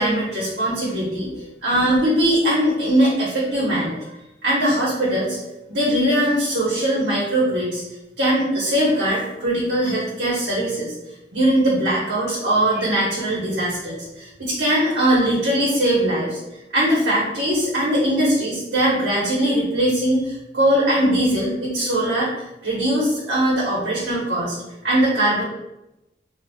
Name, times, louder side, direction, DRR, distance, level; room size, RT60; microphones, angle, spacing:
voice 1, 0.0-4.0 4.4-5.4 5.7-7.8 8.2-10.9 11.3-16.4 16.7-22.3 22.6-24.6 24.8-25.4, right 1 dB, 90° right, -7 dB, 1.1 m, -21 dB
4.4 x 2.4 x 2.3 m, 0.93 s
head